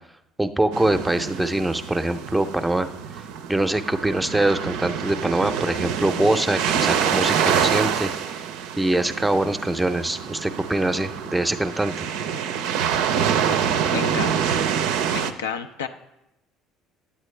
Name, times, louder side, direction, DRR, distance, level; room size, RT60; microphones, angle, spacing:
voice 1, 0.4-2.9 3.5-8.1 8.8-12.0, right 1 dB, 10° right, 9 dB, 0.6 m, -23 dB
sound 1, 0.7-15.3, right 8 dB, 70° right, 0.5 m, -26 dB
voice 2, 13.9-14.6 15.1-15.9, left 7 dB, 85° left, 7 dB, 0.4 m, -31 dB
9.3 x 8.1 x 3.3 m, 0.87 s
hypercardioid pair, 65°, 0 cm